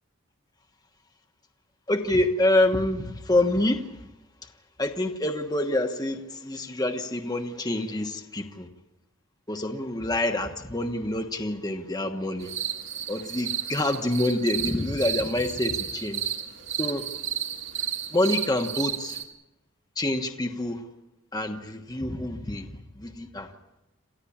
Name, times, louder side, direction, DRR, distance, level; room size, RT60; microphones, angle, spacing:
voice 1, 1.9-3.9 4.8-8.7 9.5-12.5 13.1-16.3 16.7-17.0 18.1-19.2 20.0-20.8 21.3-23.5, left 1 dB, 20° left, 5 dB, 1.2 m, -27 dB
sound 1, 12.4-19.2, right 9 dB, 65° right, 2.8 m, -32 dB
28.0 x 15.5 x 8.7 m, 0.98 s
head